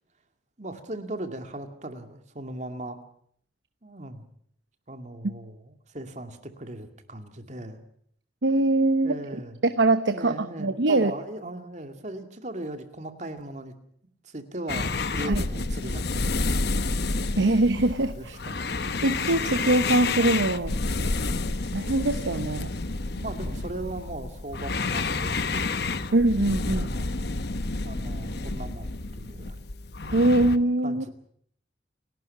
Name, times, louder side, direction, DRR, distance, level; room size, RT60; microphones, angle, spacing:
voice 1, 0.6-3.0 3.8-4.3 4.9-7.8 9.0-9.6 10.1-13.7 14.2-16.9 17.2-17.4 18.1-18.7 23.0-25.8 26.7-27.1 27.8-29.6 30.0-30.1 30.8-31.1, right 1 dB, 40° right, 7 dB, 2.3 m, -38 dB
voice 2, 8.4-9.2 9.6-11.1 15.3-15.4 17.4-18.4 19.0-20.7 21.7-22.7 26.1-26.9 30.1-31.1, right 2 dB, 80° right, 11 dB, 1.0 m, -22 dB
sound 1, 14.7-30.6, left 3 dB, 60° left, 1.1 m, -29 dB
29.0 x 12.0 x 8.5 m, 0.65 s
head